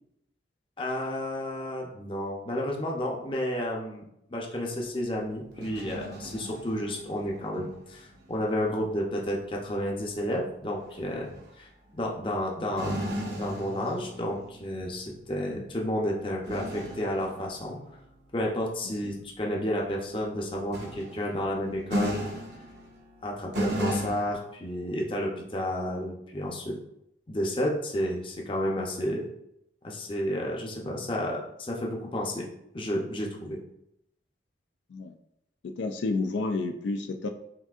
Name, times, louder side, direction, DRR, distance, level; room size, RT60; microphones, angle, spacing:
voice 1, 0.8-13.0 13.4-17.8 18.3-22.3 23.2-26.7 27.3-29.3 29.8-32.5 32.7-33.6, left 1 dB, 30° left, -1 dB, 0.6 m, -31 dB
sound 1, 5.5-7.6 8.0-8.3 10.9-11.4 11.9-12.0 12.8-14.8 16.4-17.9 20.7-23.2 23.5-24.4, equal, 65° right, 0.9 m, -35 dB
voice 2, 35.6-37.3, left 3 dB, 80° left, 6 dB, 0.3 m, -30 dB
5.8 x 2.7 x 2.4 m, 0.80 s
head